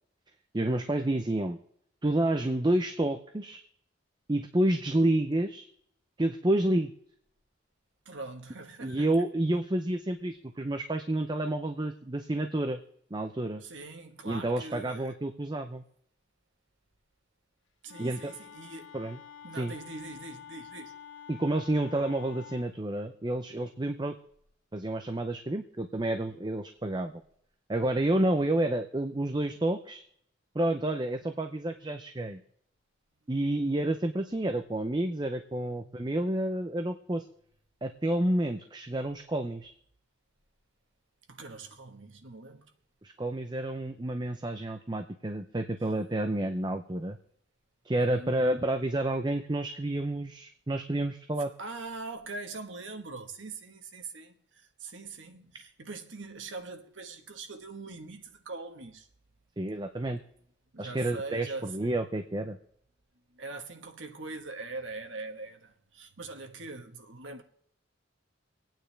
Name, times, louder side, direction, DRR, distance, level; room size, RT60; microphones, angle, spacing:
voice 1, 0.5-1.6 2.0-3.6 4.3-5.7 6.2-6.9 8.8-12.8 13.1-13.6 14.2-15.8 18.0-18.2 18.9-19.2 19.5-19.7 21.3-24.2 24.7-27.1 27.7-30.0 30.5-32.4 33.3-37.2 37.8-39.7 43.0-47.2 47.8-51.5 59.6-60.2 60.8-62.6, right 1 dB, 20° right, 0.6 m, -29 dB
voice 2, 8.0-9.1 13.6-15.2 17.8-18.9 19.4-20.9 35.8-36.0 41.3-42.7 45.8-45.9 48.0-48.4 51.6-59.1 60.7-62.0 63.3-67.4, right 3 dB, 75° right, 1.3 m, -42 dB
Wind instrument woodwind instrument, 17.9-22.7, left 8 dB, 90° left, 1.1 m, -48 dB
25.0 x 9.1 x 3.4 m
head